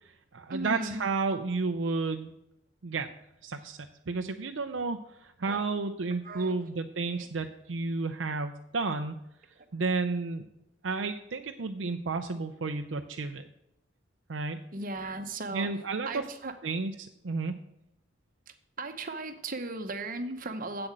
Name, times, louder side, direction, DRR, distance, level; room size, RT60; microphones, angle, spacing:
voice 1, 0.0-2.3 2.8-3.1 3.4-3.8 4.1-9.2 9.7-10.5 10.8-13.5 14.3-14.6 15.5-16.2 16.6-17.5, right 3 dB, 70° right, 6 dB, 0.6 m, -32 dB
voice 2, 0.5-1.0 5.4-5.6 6.2-6.5 7.2-7.3 9.6-9.7 14.7-15.7 16.1-16.5 18.8-20.9, right 2 dB, 45° right, 7 dB, 1.0 m, -36 dB
7.8 x 7.8 x 7.4 m, 0.84 s
head